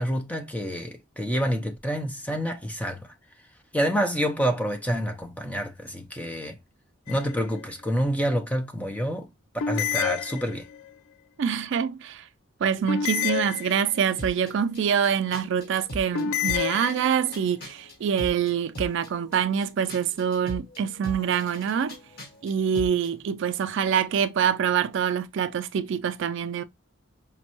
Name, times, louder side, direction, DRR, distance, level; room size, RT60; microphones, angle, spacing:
voice 1, 0.0-3.1 3.7-6.6 7.1-9.3 9.7-10.7, equal, 5° left, 0.5 m, -28 dB
sound 1, 7.1-7.6 9.6-10.9 12.9-14.2 16.1-17.4, left 9 dB, 90° left, 0.3 m, -29 dB
voice 2, 11.4-12.3 12.6-22.0 22.4-26.6, right 8 dB, 60° right, 0.3 m, -25 dB
sound 2, 14.2-23.1, equal, 50° left, 1.5 m, -41 dB
5.1 x 2.2 x 2.9 m
head